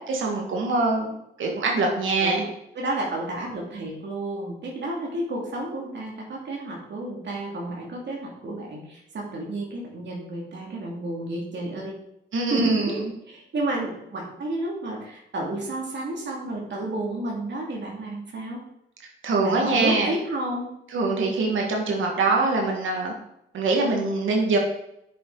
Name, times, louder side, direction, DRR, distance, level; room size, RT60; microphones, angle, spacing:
voice 1, 0.1-1.1 1.4-2.4 12.3-12.9 19.2-20.1 20.9-23.1 23.5-24.6, right 3 dB, 80° right, 0 dB, 1.7 m, -23 dB
voice 2, 2.7-12.0 12.5-13.0 13.3-18.6 19.4-20.7, right 2 dB, 65° right, -2 dB, 2.4 m, -31 dB
8.9 x 6.8 x 3.9 m, 0.79 s
cardioid pair, 65°, 20 cm